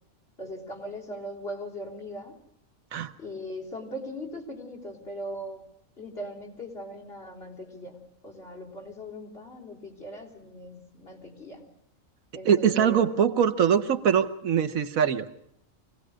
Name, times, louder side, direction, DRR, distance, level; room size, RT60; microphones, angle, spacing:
voice 1, 0.4-2.4 3.2-5.7 6.0-11.7 12.3-13.1, equal, 45° left, -1 dB, 3.8 m, -39 dB
voice 2, 12.4-15.4, right 8 dB, 80° right, 10 dB, 1.4 m, -23 dB
24.5 x 17.5 x 6.3 m, 0.74 s
omnidirectional pair, 1.4 m